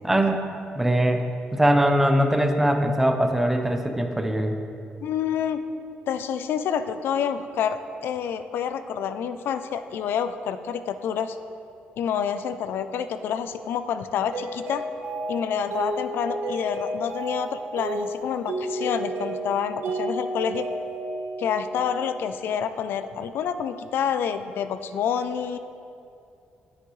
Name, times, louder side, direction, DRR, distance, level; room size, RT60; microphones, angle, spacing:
voice 1, 0.0-0.4 0.7-1.2 1.5-4.6, right 1 dB, 5° right, 4 dB, 0.6 m, -21 dB
voice 2, 5.0-5.6 6.1-11.4 12.0-14.8 15.3-20.7 21.4-25.6, left 8 dB, 70° left, 11 dB, 0.4 m, -28 dB
Mallet percussion, 14.3-22.5, right 2 dB, 70° right, 1.1 m, -32 dB
9.6 x 9.4 x 3.2 m, 2.6 s
cardioid pair, 145°, 4 cm